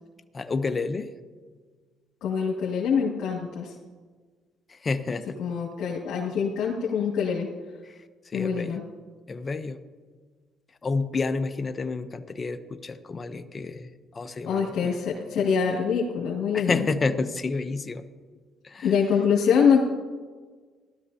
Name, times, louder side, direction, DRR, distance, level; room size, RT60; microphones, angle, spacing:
voice 1, 0.3-1.1 4.7-5.4 7.8-8.0 8.3-8.8 9.3-9.8 10.8-15.0 16.5-18.0 18.6-18.9, left 4 dB, 30° left, 8 dB, 0.7 m, -30 dB
voice 2, 2.2-3.7 5.4-7.5 8.3-8.8 14.5-16.9 18.8-19.9, left 6 dB, 75° left, -5 dB, 2.0 m, -24 dB
16.0 x 12.5 x 2.8 m, 1.5 s
cardioid pair, 105°, 0 cm